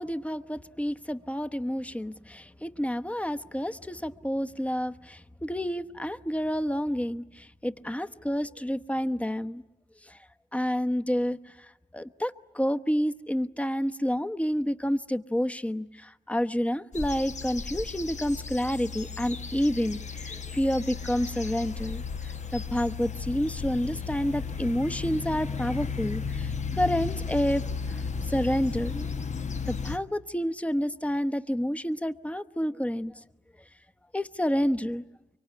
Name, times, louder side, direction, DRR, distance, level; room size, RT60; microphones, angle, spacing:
voice 1, 0.0-9.6 10.0-10.2 10.5-29.1 29.7-33.1 34.1-35.0, equal, 10° left, 9 dB, 1.0 m, -29 dB
sound 1, 16.9-30.0, left 5 dB, 55° left, 1.2 m, -34 dB
24.0 x 24.0 x 9.9 m, 1.0 s
cardioid pair, 60°, 14 cm